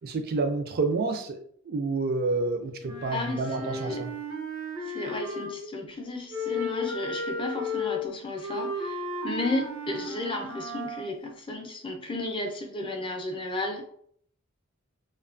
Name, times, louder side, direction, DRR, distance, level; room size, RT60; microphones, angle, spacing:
voice 1, 0.0-1.4 1.7-4.1, right 3 dB, 45° right, 6 dB, 0.3 m, -29 dB
Wind instrument woodwind instrument, 2.8-5.7 6.3-11.1, left 2 dB, 85° right, 0.7 m, -34 dB
voice 2, 3.1-4.0 4.8-13.8, left 2 dB, 25° left, 2 dB, 0.4 m, -33 dB
2.6 x 2.2 x 2.4 m, 0.62 s
head